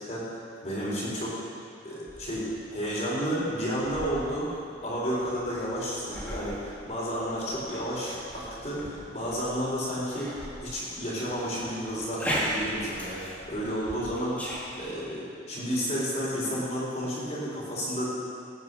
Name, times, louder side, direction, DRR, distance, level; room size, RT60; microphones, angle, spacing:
voice 1, 0.6-1.4 1.8-4.5 4.8-10.3 10.6-14.4 14.8-18.1, equal, 35° left, -6 dB, 4.1 m, -31 dB
sound 1, 2.1-14.9, equal, 10° left, 2.3 m, -39 dB
19.0 x 9.4 x 5.5 m, 2.3 s
head